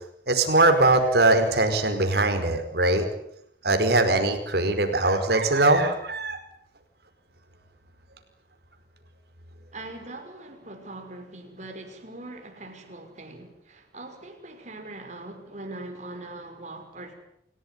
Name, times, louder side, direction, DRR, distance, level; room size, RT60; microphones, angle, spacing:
voice 1, 0.3-3.1 3.6-6.4, right 2 dB, 60° right, 7 dB, 5.0 m, -21 dB
voice 2, 9.7-17.1, right 2 dB, 40° right, 4 dB, 6.0 m, -41 dB
29.0 x 17.0 x 9.8 m, 0.75 s
head